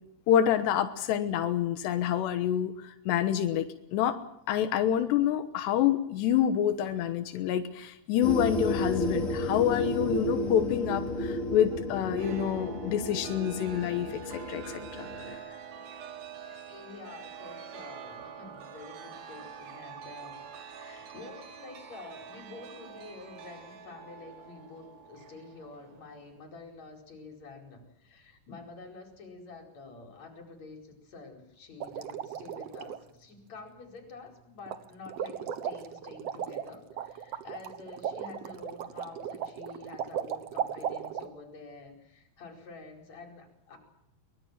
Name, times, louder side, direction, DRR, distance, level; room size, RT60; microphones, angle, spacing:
voice 1, 0.3-4.2 4.5-15.4, left 10 dB, 90° left, 8 dB, 3.4 m, -27 dB
sound 1, 8.2-15.3, equal, 25° left, 2.2 m, -32 dB
Chime, 12.2-26.4, right 7 dB, 90° right, 4.4 m, -46 dB
voice 2, 16.7-20.4 20.7-43.8, left 3 dB, 40° left, 3 dB, 5.9 m, -48 dB
sound 2, 31.8-33.0 34.7-34.8 35.1-41.3, right 8 dB, 70° right, 1.5 m, -36 dB
23.5 x 22.5 x 7.5 m, 0.78 s
omnidirectional pair, 4.8 m